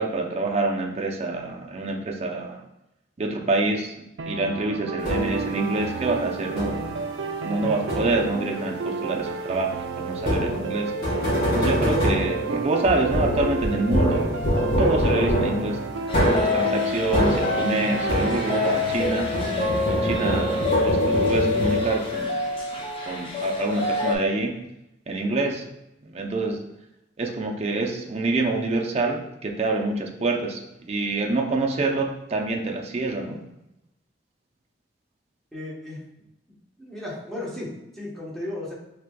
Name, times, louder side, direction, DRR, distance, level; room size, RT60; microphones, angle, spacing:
voice 1, 0.0-2.6 3.2-6.8 7.4-10.9 11.5-14.3 14.8-15.8 16.4-19.3 19.9-22.4 23.1-24.5 25.1-25.7 26.0-26.6 27.2-33.4, right 2 dB, 35° right, 2 dB, 0.5 m, -26 dB
sound 1, 4.2-19.0, right 4 dB, 90° right, 0.4 m, -32 dB
sound 2, 5.0-5.6 6.6-7.0 7.9-8.4 10.2-18.7 19.0-22.2, equal, 55° left, 1.3 m, -25 dB
sound 3, 16.1-24.2, left 3 dB, 30° left, 0.6 m, -27 dB
voice 2, 35.5-36.0 36.8-38.7, left 1 dB, ahead, -7 dB, 1.0 m, -35 dB
4.9 x 3.3 x 2.2 m, 0.89 s
head